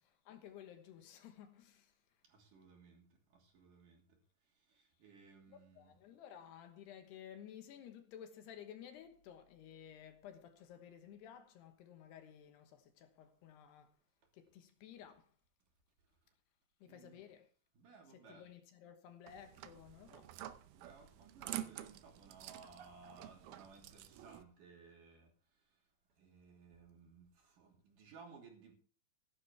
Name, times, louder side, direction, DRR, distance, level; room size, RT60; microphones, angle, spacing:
voice 1, 0.0-1.9 5.5-14.0 14.3-15.3 16.8-17.5 18.1-20.4, left 9 dB, 75° left, 3.3 m, -55 dB
voice 2, 2.3-3.0 3.3-4.0 5.0-5.9 16.9-17.2 17.8-18.4 20.7-25.3 26.2-28.7, right 4 dB, 55° right, 4.3 m, -59 dB
sound 1, 19.3-24.4, right 13 dB, 85° right, 1.9 m, -49 dB
16.0 x 11.5 x 3.5 m
omnidirectional pair, 4.9 m